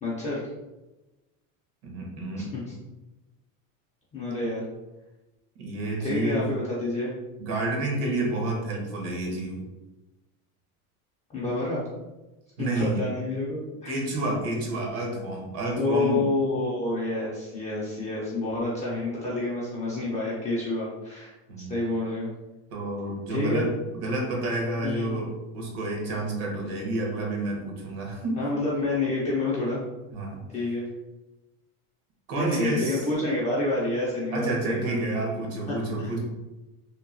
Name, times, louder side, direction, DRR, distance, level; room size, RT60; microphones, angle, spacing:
voice 1, 0.0-0.4 2.5-2.6 4.1-4.6 6.0-7.1 11.3-11.8 12.6-13.9 15.8-22.3 23.3-23.6 24.8-25.1 28.4-29.8 30.5-30.8 32.3-35.3 35.7-36.1, left 2 dB, 15° left, -7 dB, 0.4 m, -28 dB
voice 2, 1.8-2.5 5.6-6.6 7.4-9.6 12.6-13.0 13.9-16.3 21.5-21.8 22.7-28.5 30.1-30.4 32.3-33.2 34.3-36.2, right 2 dB, 65° right, 0 dB, 1.0 m, -29 dB
2.9 x 2.2 x 2.5 m, 1.1 s
supercardioid pair, 130°, 45 cm